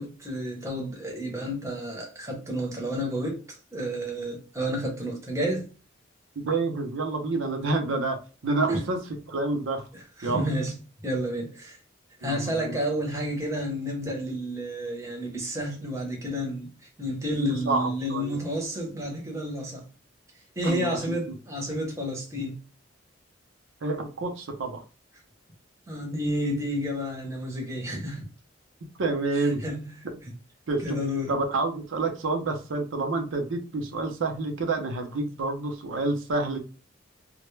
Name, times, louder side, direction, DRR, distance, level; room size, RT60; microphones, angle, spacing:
voice 1, 0.0-5.7 8.7-8.8 9.9-10.7 11.0-11.8 12.2-16.7 17.0-19.8 20.6-22.6 25.9-28.3 29.4-29.9 30.8-31.3, equal, 15° right, 0.7 m, -30 dB
voice 2, 6.4-8.2 8.4-9.0 9.3-9.8 10.2-10.5 12.2-12.8 17.4-18.4 20.6-21.1 23.8-24.8 29.0-29.6 30.1-30.2 30.7-31.0 31.3-36.6, right 3 dB, 80° right, 0.5 m, -28 dB
2.1 x 2.0 x 3.1 m
head